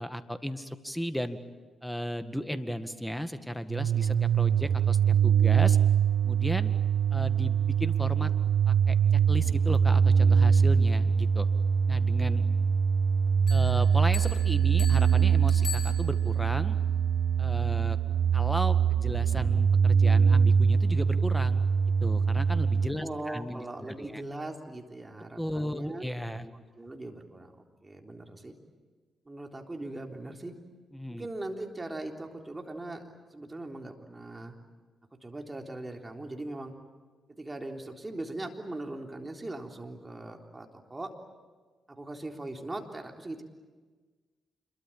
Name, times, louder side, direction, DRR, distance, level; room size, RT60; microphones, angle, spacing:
voice 1, 0.0-1.4 1.8-5.8 6.2-6.7 7.1-8.3 8.7-9.0 9.3-11.5 11.9-12.4 13.5-16.8 17.4-18.0 18.3-21.6 22.0-24.2 25.4-26.5 30.9-31.3, equal, 5° left, 10 dB, 1.9 m, -35 dB
sound 1, 3.7-22.9, right 7 dB, 65° right, 0.7 m, -23 dB
Bell, 13.5-16.5, left 7 dB, 45° left, 5.1 m, -42 dB
voice 2, 22.9-26.1 26.4-28.5 29.3-30.5 31.1-33.0 33.3-34.6 35.2-36.7 37.4-41.1 41.9-43.4, right 2 dB, 25° right, 2 dB, 3.6 m, -40 dB
27.0 x 22.5 x 8.8 m, 1.4 s
hypercardioid pair, 40°, 0 cm